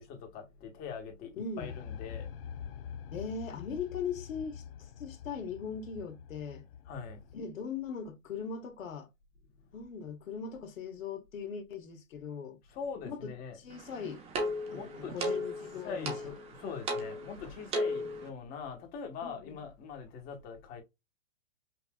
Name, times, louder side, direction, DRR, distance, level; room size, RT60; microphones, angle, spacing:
voice 1, 0.0-2.3 6.9-7.2 12.7-13.6 14.7-15.4 15.8-20.8, left 6 dB, 25° left, 1.1 m, -42 dB
voice 2, 1.4-1.7 3.1-6.6 7.3-9.1 9.7-12.6 13.0-14.2 14.7-16.1 19.2-19.6, left 6 dB, 85° left, 1.2 m, -40 dB
sound 1, 1.6-7.3, left 8 dB, 50° left, 0.5 m, -45 dB
sound 2, 13.7-18.3, equal, 15° right, 0.7 m, -36 dB
5.6 x 2.5 x 2.2 m
hypercardioid pair, 150°, 39 cm